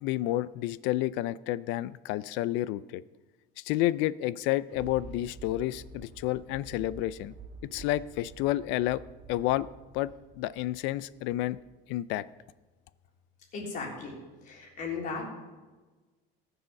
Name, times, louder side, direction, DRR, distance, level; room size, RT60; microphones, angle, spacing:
voice 1, 0.0-3.0 3.6-7.3 7.6-9.0 9.3-9.7 9.9-10.1 10.4-11.6 11.9-12.2, left 15 dB, 70° left, 17 dB, 0.5 m, -30 dB
Thunder, 4.3-11.8 12.3-12.4, right 3 dB, 40° right, 1.5 m, -49 dB
voice 2, 13.5-14.1 14.4-15.2, left 4 dB, 40° left, -2 dB, 3.6 m, -36 dB
18.5 x 7.0 x 5.8 m, 1.3 s
cardioid pair, 165°, 20 cm